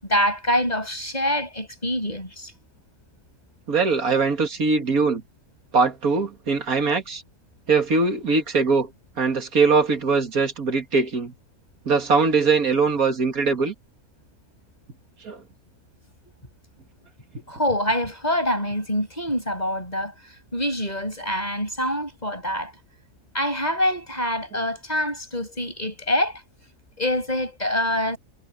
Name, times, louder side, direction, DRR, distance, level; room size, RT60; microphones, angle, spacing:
voice 1, 0.0-2.5 17.5-22.7 23.3-26.4 27.0-28.2, left 1 dB, 25° left, 7.5 m, -25 dB
voice 2, 3.7-5.2 5.7-7.2 7.7-8.9 9.2-11.3 11.9-13.7 15.2-15.4, right 4 dB, 65° right, 2.6 m, -21 dB
omnidirectional pair, 1.6 m